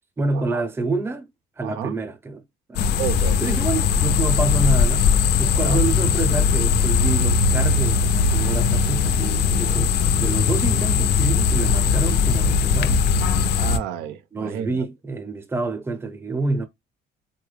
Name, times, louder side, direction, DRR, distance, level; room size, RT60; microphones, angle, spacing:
voice 1, 0.2-1.3 1.6-2.4 2.7-2.9 3.4-5.0 5.4-13.1 14.3-16.6, right 3 dB, 15° right, 0.6 m, -27 dB
voice 2, 1.6-2.0 3.0-3.4 5.5-5.8 13.6-14.9, right 10 dB, 85° right, 0.5 m, -30 dB
sound 1, 2.8-13.8, left 5 dB, 75° left, 0.5 m, -19 dB
3.5 x 2.2 x 3.2 m
cardioid pair, 110°, 17 cm